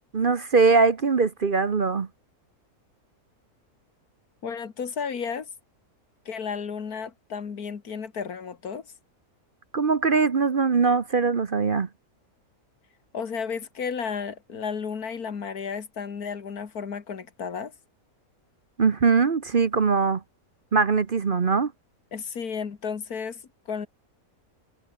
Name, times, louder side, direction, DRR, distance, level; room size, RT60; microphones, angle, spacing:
voice 1, 0.1-2.1 9.7-11.9 18.8-20.2 20.7-21.7, right 4 dB, 40° right, 1.0 m, -21 dB
voice 2, 4.4-5.5 6.3-8.9 13.1-17.7 22.1-23.4 23.7-23.9, left 6 dB, 80° left, 2.3 m, -33 dB
omnidirectional pair, 1.6 m